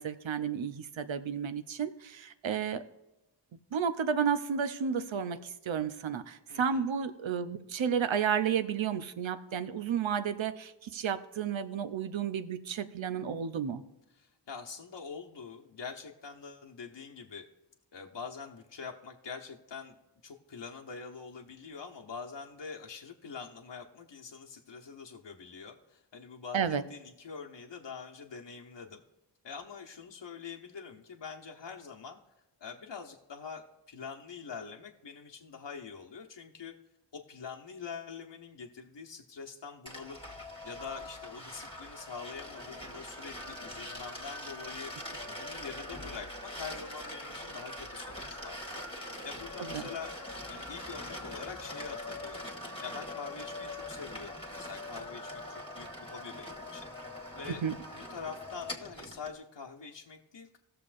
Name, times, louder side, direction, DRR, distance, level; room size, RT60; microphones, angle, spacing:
voice 1, 0.0-2.8 3.7-13.8 26.5-26.8 49.6-49.8 57.6-57.7, right 7 dB, 80° right, 11 dB, 0.7 m, -32 dB
voice 2, 6.5-6.8 14.2-17.5 17.9-19.9 20.2-29.0 29.4-32.2 32.6-36.7 37.1-40.2 40.6-44.9 45.3-48.8 49.2-50.1 50.5-52.5 52.8-56.9 57.3-57.7 57.9-60.6, left 5 dB, 65° left, 1 dB, 1.0 m, -45 dB
sound 1, 39.9-59.3, left 1 dB, 10° left, 1.6 m, -42 dB
17.5 x 6.7 x 2.5 m, 0.98 s
cardioid pair, 45°, 46 cm